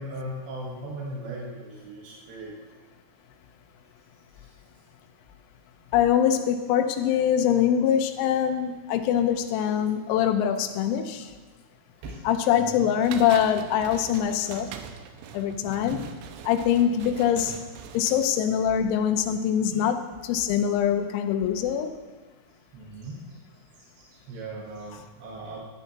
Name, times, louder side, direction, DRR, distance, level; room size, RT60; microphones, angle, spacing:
voice 1, 0.0-2.6 4.3-4.5 12.0-12.9 15.6-16.0 19.7-19.8 22.7-23.4 23.8-25.7, right 1 dB, 70° right, -4 dB, 2.6 m, -39 dB
voice 2, 5.9-11.3 12.2-14.7 15.3-16.0 16.5-17.6 18.0-21.9, left 9 dB, 85° left, 7 dB, 3.5 m, -23 dB
sound 1, 13.0-18.3, right 7 dB, 90° right, 2.6 m, -42 dB
15.5 x 10.0 x 2.8 m, 1.3 s
omnidirectional pair, 6.0 m